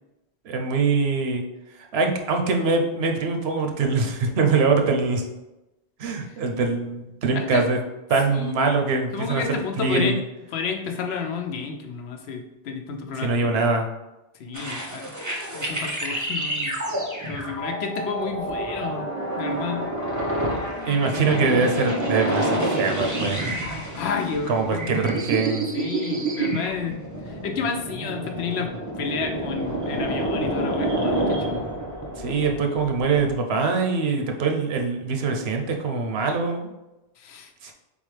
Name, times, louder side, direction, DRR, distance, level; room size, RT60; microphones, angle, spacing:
voice 1, 0.4-1.4 1.9-5.2 6.0-7.8 8.1-10.2 13.2-13.9 20.9-23.4 24.5-25.7 32.2-36.7 37.6-37.7, right 4 dB, 75° right, 4 dB, 0.9 m, -23 dB
voice 2, 7.3-7.7 8.3-8.6 9.1-10.2 10.5-13.5 14.4-15.1 15.5-16.8 17.2-19.1 19.4-19.9 23.9-24.8 25.7-31.7 37.2-37.7, left 5 dB, 75° left, 4 dB, 0.9 m, -31 dB
sound 1, 14.5-33.4, right 1 dB, 20° right, 0.6 m, -28 dB
4.1 x 3.6 x 3.2 m, 0.99 s
omnidirectional pair, 1.1 m